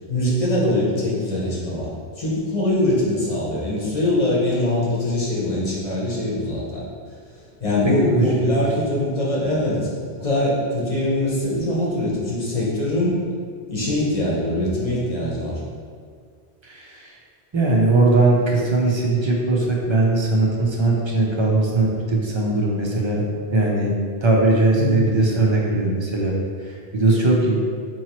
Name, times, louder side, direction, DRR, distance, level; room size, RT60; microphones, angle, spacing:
voice 1, 0.1-6.8 7.6-9.9 10.2-13.2 13.7-15.6 24.8-25.2, left 1 dB, 35° left, -6 dB, 0.9 m, -22 dB
voice 2, 8.1-8.7 16.6-17.1 17.5-23.2 23.5-23.9 24.2-26.3 26.6-27.6, right 2 dB, 40° right, -2 dB, 0.4 m, -20 dB
4.5 x 2.9 x 2.9 m, 2.1 s
omnidirectional pair, 1.1 m